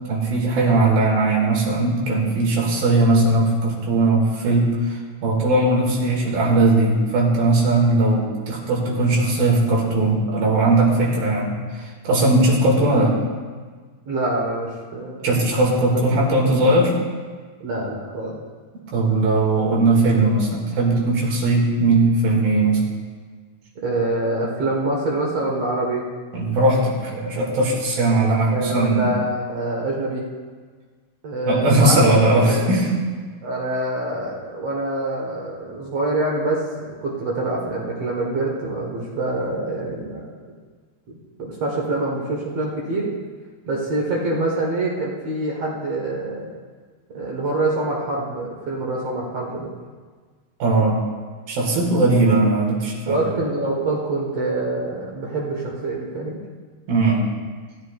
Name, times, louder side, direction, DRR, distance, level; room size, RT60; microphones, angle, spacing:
voice 1, 0.1-13.2 15.2-16.9 18.9-22.8 26.3-29.1 31.5-32.9 50.6-51.0 51.5-53.2 56.9-57.2, right 2 dB, 80° right, -2 dB, 4.1 m, -19 dB
voice 2, 14.1-15.3 16.3-16.5 17.6-18.4 23.8-26.0 28.5-30.2 31.2-32.7 33.4-40.4 41.1-43.1 43.7-46.5 47.1-49.7 53.1-56.4, right 2 dB, 55° right, -3 dB, 2.2 m, -25 dB
16.0 x 14.0 x 2.5 m, 1.5 s
omnidirectional pair, 4.1 m